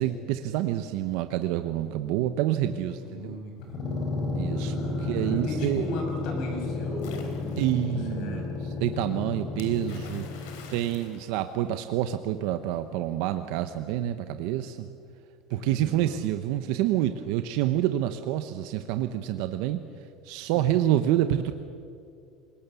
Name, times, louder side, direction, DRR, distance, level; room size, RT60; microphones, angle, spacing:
voice 1, 0.0-3.4 4.3-4.7 5.0-5.8 7.6-8.5 8.8-10.4 10.7-14.9 15.5-19.8 20.2-21.5, right 12 dB, 65° right, 9 dB, 0.8 m, -27 dB
voice 2, 2.7-3.8 4.5-8.8 9.1-9.6 15.6-16.2 20.5-20.7, left 1 dB, 50° left, 2 dB, 5.8 m, -38 dB
sound 1, 3.6-11.0, left 3 dB, 25° left, 4.0 m, -32 dB
Splash splatter, 7.0-7.9 9.6-12.0, left 6 dB, 75° left, 3.7 m, -48 dB
25.5 x 21.5 x 6.9 m, 2.5 s
cardioid pair, 175°, 0 cm